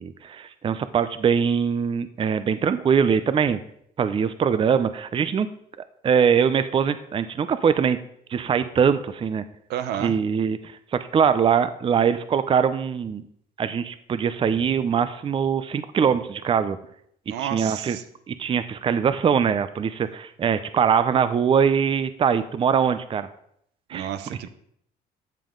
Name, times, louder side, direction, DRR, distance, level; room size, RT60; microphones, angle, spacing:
voice 1, 0.0-3.6 4.0-5.5 6.0-8.0 8.3-9.4 10.0-13.2 13.6-16.8 17.4-18.0 18.3-23.3 23.9-24.1, right 7 dB, 30° right, 12 dB, 0.5 m, -22 dB
voice 2, 9.7-10.2 17.3-18.0 23.9-24.5, right 10 dB, 80° right, 11 dB, 0.9 m, -31 dB
13.0 x 7.2 x 3.8 m, 0.70 s
cardioid pair, 110°, 17 cm